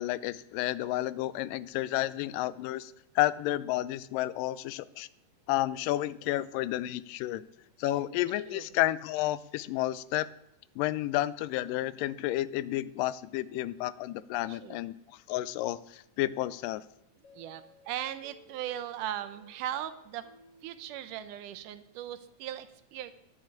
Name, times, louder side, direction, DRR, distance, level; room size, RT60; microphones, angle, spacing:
voice 1, 0.0-5.1 5.5-7.4 7.8-10.3 10.8-15.0 15.3-16.8, left 15 dB, 85° left, 17 dB, 2.2 m, -31 dB
voice 2, 14.5-14.8 17.3-20.3 20.6-23.1, right 11 dB, 80° right, 11 dB, 2.2 m, -38 dB
sound 1, 17.2-21.9, left 2 dB, 30° left, 2.6 m, -60 dB
10.5 x 6.5 x 8.9 m, 0.80 s
omnidirectional pair, 3.8 m